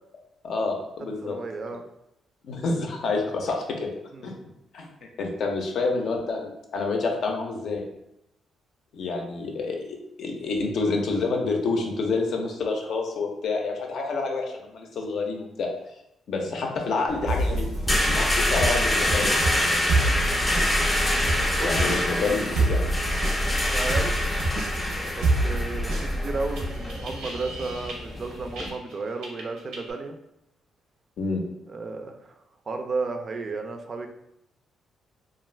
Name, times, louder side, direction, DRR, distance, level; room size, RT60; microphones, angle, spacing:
voice 1, 0.4-1.4 2.4-3.9 4.2-4.3 4.7-4.9 5.2-7.9 8.9-15.7 16.3-17.7 18.0-19.5 21.3-22.8 31.2-31.4, left 3 dB, 65° left, 2 dB, 0.5 m, -28 dB
voice 2, 1.0-1.8 4.1-4.4 20.2-20.6 21.6-22.1 23.4-24.1 25.1-30.2 31.7-32.3 32.7-34.1, right 3 dB, 45° right, 5 dB, 0.3 m, -33 dB
sound 1, 17.1-28.7, left 1 dB, 15° left, 0.5 m, -27 dB
sound 2, 17.3-28.9 29.2-29.9, right 1 dB, 90° right, 0.6 m, -27 dB
2.4 x 2.3 x 3.2 m, 0.83 s
cardioid pair, 90°, 0 cm